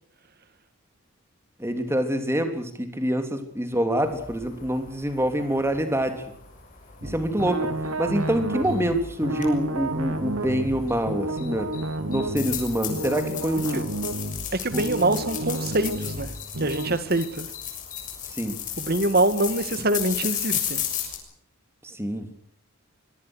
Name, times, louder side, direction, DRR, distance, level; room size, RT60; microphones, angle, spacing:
voice 1, 1.6-6.2 7.0-11.7 12.1-13.9 14.7-14.8 18.2-18.6 21.8-22.3, equal, 10° right, 3.3 m, -26 dB
sound 1, 4.0-21.2, left 10 dB, 35° left, 6.9 m, -35 dB
sound 2, 7.0-17.0, right 1 dB, 80° right, 3.1 m, -31 dB
voice 2, 14.5-16.3 16.6-17.5 18.8-20.9, right 2 dB, 45° right, 1.9 m, -24 dB
24.5 x 23.5 x 6.4 m
head